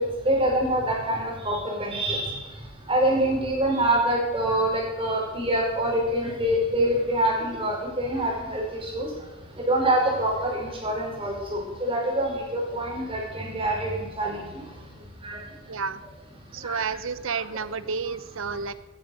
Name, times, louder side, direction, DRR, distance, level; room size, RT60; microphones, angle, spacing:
voice 1, 0.0-2.4 2.9-9.1 9.7-14.6 15.2-15.4 16.6-16.8, right 1 dB, 25° right, -1 dB, 5.1 m, -25 dB
voice 2, 15.7-16.0 16.5-18.7, right 5 dB, 70° right, 14 dB, 0.8 m, -30 dB
18.0 x 10.0 x 6.4 m, 1.1 s
head